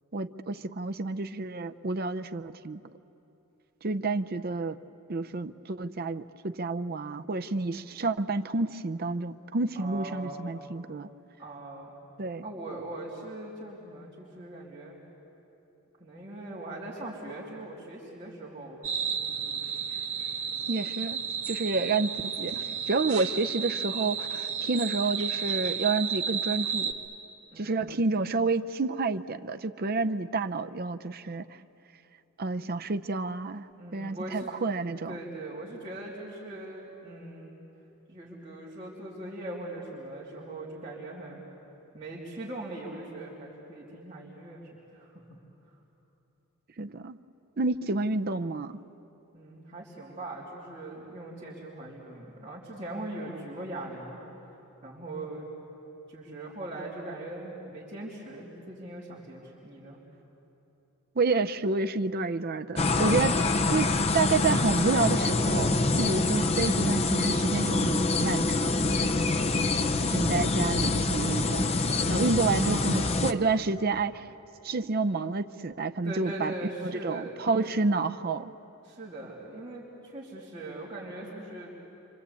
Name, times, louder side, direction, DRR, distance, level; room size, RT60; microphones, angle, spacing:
voice 1, 0.1-2.8 3.8-4.8 5.1-11.1 12.2-12.4 20.7-26.9 27.6-31.4 32.4-33.7 33.9-35.2 46.8-47.2 47.6-48.8 61.2-69.2 70.1-71.7 72.1-74.3 74.6-76.5 76.8-78.5, right 3 dB, 45° right, 9 dB, 0.6 m, -29 dB
voice 2, 9.7-10.4 11.4-11.9 12.4-15.0 16.0-19.6 27.5-28.0 33.8-34.5 35.1-37.5 38.1-41.4 41.9-45.4 49.3-54.2 54.8-55.5 56.1-60.0 72.5-73.2 76.0-77.5 78.8-81.7, right 1 dB, 25° right, -7 dB, 3.3 m, -41 dB
sound 1, 18.8-26.9, right 7 dB, 65° right, 1.7 m, -32 dB
sound 2, 62.8-73.3, left 3 dB, 25° left, 0.6 m, -26 dB
27.5 x 25.0 x 8.4 m, 3.0 s
head